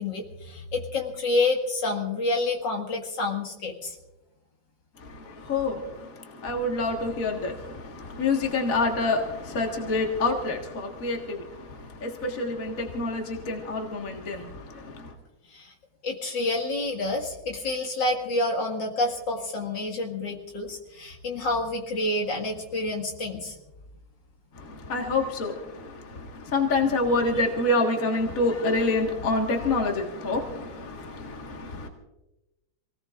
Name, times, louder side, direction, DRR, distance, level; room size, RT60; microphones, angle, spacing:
voice 1, 0.0-4.0 15.5-15.7 16.0-23.5, left 2 dB, 70° left, 2.6 m, -28 dB
voice 2, 5.0-15.1 24.5-31.9, left 2 dB, 45° left, 2.1 m, -27 dB
27.0 x 18.5 x 2.5 m
omnidirectional pair, 2.1 m